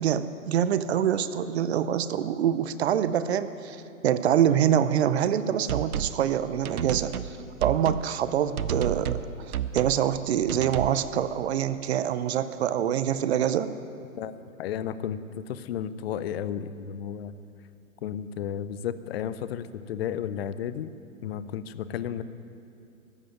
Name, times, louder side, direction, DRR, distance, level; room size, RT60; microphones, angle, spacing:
voice 1, 0.0-3.8 4.0-7.1 7.6-9.2 9.7-13.7, right 9 dB, 50° right, 13 dB, 0.6 m, -25 dB
sound 1, 5.7-6.2 6.6-7.3 7.6-8.1 8.6-9.3 9.5-10.0 10.5-11.0, right 8 dB, 85° right, 0.8 m, -30 dB
voice 2, 14.6-17.4 18.0-20.9 21.2-22.2, left 9 dB, 45° left, 14 dB, 0.6 m, -33 dB
14.0 x 7.6 x 8.8 m, 2.5 s
hypercardioid pair, 135°, 43 cm